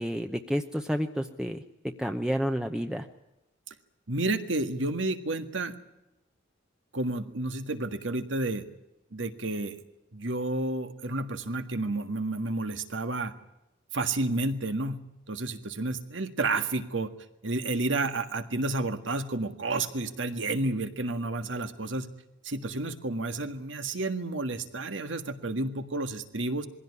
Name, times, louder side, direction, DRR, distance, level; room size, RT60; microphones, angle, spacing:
voice 1, 0.0-1.6 2.0-3.1, equal, 5° right, 5 dB, 0.8 m, -30 dB
voice 2, 4.1-5.7 6.9-8.6 9.1-9.8 10.1-13.3 13.9-15.0 15.3-17.1 17.4-22.1 22.4-26.7, right 2 dB, 75° right, 9 dB, 1.7 m, -31 dB
22.0 x 16.5 x 9.8 m, 0.93 s
head